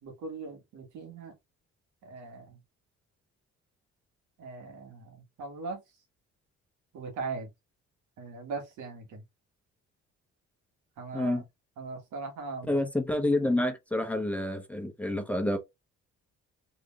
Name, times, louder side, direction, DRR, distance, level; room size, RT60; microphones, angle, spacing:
voice 1, 0.0-1.4 2.0-2.6 4.4-5.8 6.9-7.5 8.2-9.2 11.0-11.4 11.8-12.8, right 4 dB, 85° right, 1.9 m, -40 dB
voice 2, 12.7-15.6, left 1 dB, 5° left, 1.1 m, -28 dB
3.8 x 3.6 x 2.5 m
cardioid pair, 90°, 30 cm